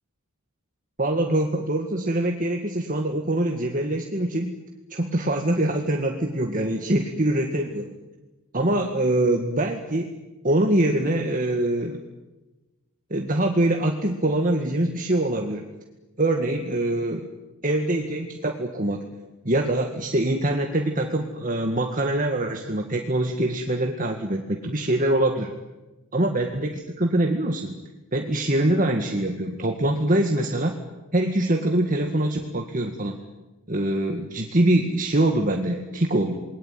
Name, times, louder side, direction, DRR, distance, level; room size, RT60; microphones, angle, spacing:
voice 1, 1.0-4.5 4.9-7.9 8.5-10.1 10.4-12.0 13.1-15.7 16.2-17.3 17.6-19.0 19.5-25.5 26.1-27.8 28.1-30.8 31.1-33.2 33.7-36.4, right 1 dB, 40° right, 3 dB, 2.0 m, -24 dB
28.5 x 22.0 x 9.3 m, 1.1 s
head